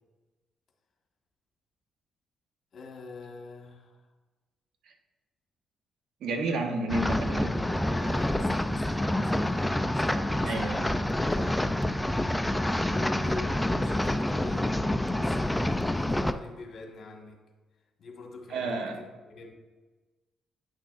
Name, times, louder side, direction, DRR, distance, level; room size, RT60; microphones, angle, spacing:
voice 1, 2.7-4.0 7.3-11.0 11.3-14.7 15.0-17.4 18.0-19.5, left 3 dB, 55° left, 1 dB, 1.5 m, -45 dB
voice 2, 6.2-7.5 10.4-10.9 18.5-19.0, right 2 dB, 75° right, 3 dB, 1.0 m, -30 dB
sound 1, 6.9-16.3, left 1 dB, 5° left, 0.3 m, -27 dB
9.4 x 6.1 x 2.5 m, 1.2 s
cardioid pair, 90°, 0 cm